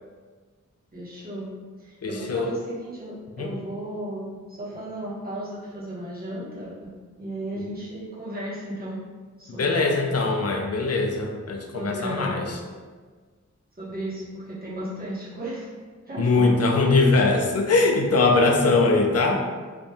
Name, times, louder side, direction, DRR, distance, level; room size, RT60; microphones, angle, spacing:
voice 1, 0.9-1.5 1.8-6.9 7.2-9.0 9.4-10.2 11.7-12.6 13.8-15.7 16.0-16.6 16.9-17.0, right 1 dB, 30° right, -9 dB, 1.3 m, -35 dB
voice 2, 2.0-2.5 3.4-3.5 9.6-12.5 16.2-19.4, left 3 dB, 55° left, 2 dB, 0.5 m, -21 dB
3.0 x 2.6 x 3.4 m, 1.5 s
wide cardioid pair, 75°, 30 cm